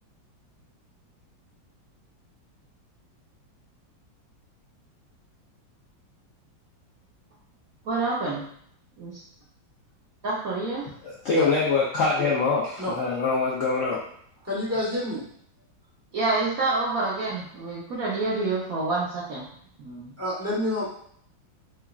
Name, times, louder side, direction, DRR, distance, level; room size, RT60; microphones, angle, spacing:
voice 1, 7.8-8.4 9.0-9.2 10.2-10.9 16.1-19.5 19.8-20.1, right 3 dB, 60° right, -5 dB, 1.1 m, -27 dB
voice 2, 11.0-14.0, left 4 dB, 65° left, -6 dB, 0.8 m, -24 dB
voice 3, 14.5-15.2 20.2-20.8, left 1 dB, 10° right, -7 dB, 0.8 m, -27 dB
4.8 x 2.3 x 2.3 m, 0.65 s
omnidirectional pair, 2.0 m